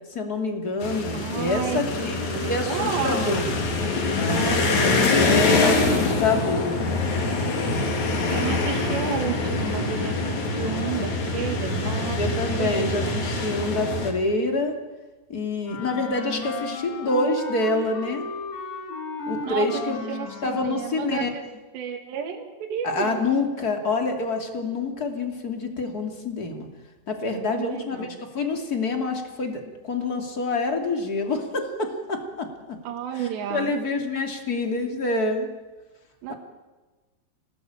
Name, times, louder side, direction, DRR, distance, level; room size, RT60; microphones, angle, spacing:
voice 1, 0.1-3.5 4.2-6.7 12.2-14.8 15.3-18.2 19.3-20.0 20.4-21.3 22.8-26.7 27.1-28.1 28.3-32.8 33.5-35.5 36.3-36.4, left 3 dB, 25° left, 4 dB, 2.4 m, -27 dB
sound 1, 0.8-14.1, left 3 dB, 45° left, 3.6 m, -25 dB
voice 2, 1.1-3.5 4.1-6.0 8.3-13.1 19.4-21.4 21.7-23.2 27.3-28.2 32.8-33.7 36.2-36.3, right 8 dB, 80° right, 2 dB, 4.0 m, -32 dB
Wind instrument woodwind instrument, 15.6-20.9, left 3 dB, 85° left, 6.5 m, -34 dB
27.0 x 18.5 x 9.0 m, 1.2 s
omnidirectional pair, 5.0 m